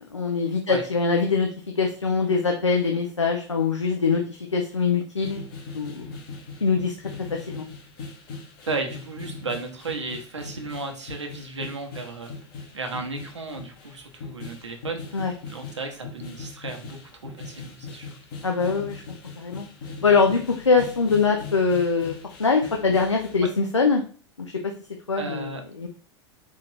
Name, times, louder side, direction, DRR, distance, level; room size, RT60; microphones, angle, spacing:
voice 1, 0.1-1.5 1.8-5.5 5.7-6.1 6.6-6.9 7.2-7.7 15.1-15.3 18.4-19.0 19.4-19.7 20.0-22.1 22.4-24.0 25.1-25.9, left 4 dB, 85° left, 2 dB, 0.5 m, -23 dB
sound 1, 5.2-23.5, left 4 dB, 50° left, 1.0 m, -40 dB
voice 2, 8.7-12.3 12.7-18.2 23.4-23.5 25.1-25.6, right 3 dB, 80° right, 4 dB, 0.8 m, -34 dB
3.6 x 2.5 x 3.3 m, 0.42 s
figure-of-eight pair, 90°, 15 cm